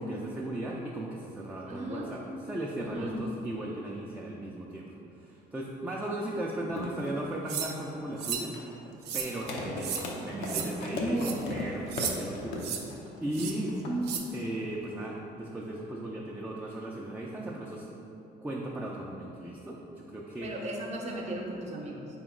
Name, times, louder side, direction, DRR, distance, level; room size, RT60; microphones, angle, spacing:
voice 1, 0.0-2.2 2.5-8.8 9.1-13.7 14.3-17.9 18.4-19.8 20.1-20.5, right 1 dB, 10° right, -3 dB, 0.3 m, -37 dB
voice 2, 1.7-2.2 2.8-3.2 10.3-11.5 13.2-14.3 20.4-22.1, right 1 dB, 40° right, 0 dB, 0.7 m, -35 dB
sound 1, 6.7-15.0, left 2 dB, 90° left, 0.6 m, -38 dB
sound 2, 7.5-7.7 8.2-8.5 9.0-9.3 9.8-10.0 10.4-10.7 11.2-11.3 11.9-12.1 12.6-12.8 13.3-13.5 14.0-14.2, right 7 dB, 75° right, 0.5 m, -33 dB
4.3 x 3.0 x 3.6 m, 2.9 s
cardioid pair, 110°, 17 cm